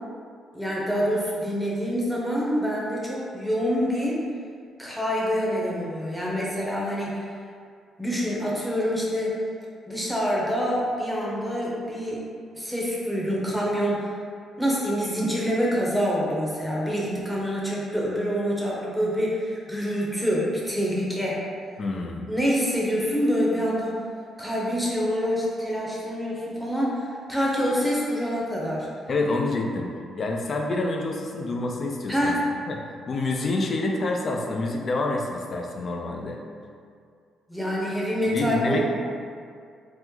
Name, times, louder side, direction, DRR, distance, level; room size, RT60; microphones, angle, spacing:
voice 1, 0.5-4.2 4.8-7.2 8.0-9.4 9.9-12.2 12.5-14.1 14.6-21.4 22.3-24.0 24.4-28.9 32.1-32.4 37.5-38.8, equal, 5° left, -5 dB, 0.7 m, -26 dB
voice 2, 21.8-22.3 29.1-32.3 32.7-32.8 33.1-36.4 38.2-38.8, left 2 dB, 45° left, 1 dB, 0.4 m, -27 dB
3.0 x 2.0 x 3.6 m, 2.2 s
cardioid pair, 90°, 0 cm